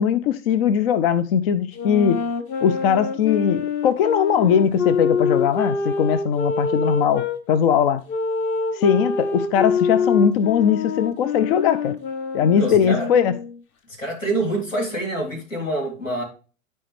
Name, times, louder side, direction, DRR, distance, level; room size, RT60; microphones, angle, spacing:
voice 1, 0.0-2.2 2.6-8.0 8.7-12.0 12.3-13.3, left 8 dB, 50° left, 0.6 m, -20 dB
sound 1, 1.7-7.4 8.1-13.6, left 5 dB, 35° left, 1.1 m, -25 dB
voice 2, 12.5-13.1 13.9-16.2, right 2 dB, 90° left, 3.5 m, -26 dB
12.0 x 4.5 x 3.2 m
figure-of-eight pair, 105°, 38 cm